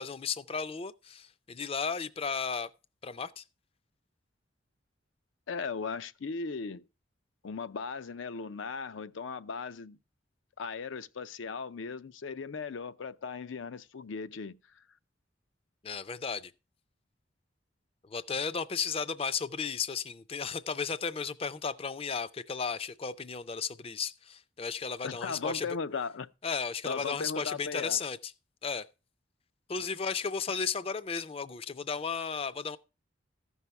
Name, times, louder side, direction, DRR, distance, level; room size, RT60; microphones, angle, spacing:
voice 1, 0.0-2.7 3.0-3.4 15.8-16.5 18.0-25.7 26.4-28.3 28.6-28.9 29.7-32.8, left 5 dB, 30° left, 0.4 m, -34 dB
voice 2, 5.5-6.8 7.4-10.0 10.6-14.8 25.0-26.3 26.8-28.0, left 5 dB, 80° left, 0.5 m, -37 dB
14.0 x 5.6 x 4.6 m
head